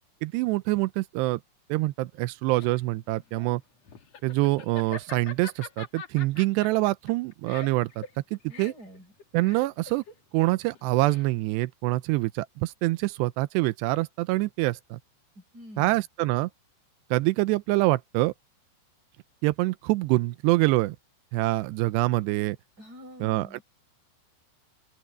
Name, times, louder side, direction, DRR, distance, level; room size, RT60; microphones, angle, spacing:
voice 1, 0.2-1.4 1.7-3.6 4.2-8.0 8.3-8.7 9.3-10.0 10.3-15.0 15.8-16.5 17.1-18.3 19.4-21.0 21.3-22.6 23.2-23.6, right 20 dB, 90° right, 2.4 m, -25 dB
Laughter, 2.2-11.6, left 6 dB, 45° left, 2.4 m, -44 dB
voice 2, 8.4-9.1 15.4-16.1 22.8-23.6, equal, 20° right, 6.9 m, -47 dB
open air
omnidirectional pair, 5.6 m